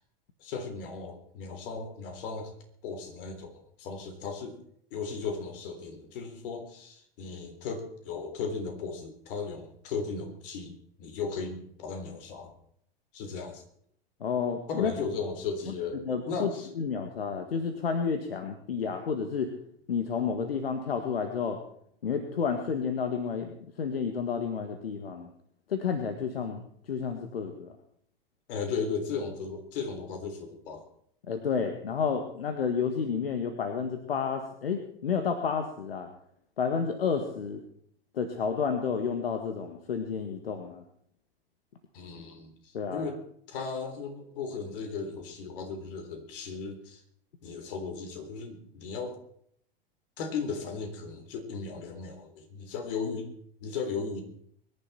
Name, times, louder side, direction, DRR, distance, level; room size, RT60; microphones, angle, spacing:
voice 1, 0.4-2.5 2.8-4.6 4.9-12.5 13.1-13.6 14.7-16.7 28.5-30.8 41.9-43.2 43.5-47.0 47.4-49.2 50.2-53.3 53.6-54.2, left 5 dB, 65° left, 6 dB, 3.8 m, -36 dB
voice 2, 14.2-14.9 16.0-16.5 16.8-19.5 19.9-21.6 22.0-23.5 23.8-25.3 25.7-26.6 26.9-27.7 31.3-36.1 36.6-37.6 38.1-40.8 42.7-43.1, left 6 dB, 85° left, 7 dB, 1.7 m, -30 dB
23.5 x 11.0 x 4.3 m, 0.67 s
hypercardioid pair, 95°, 29 cm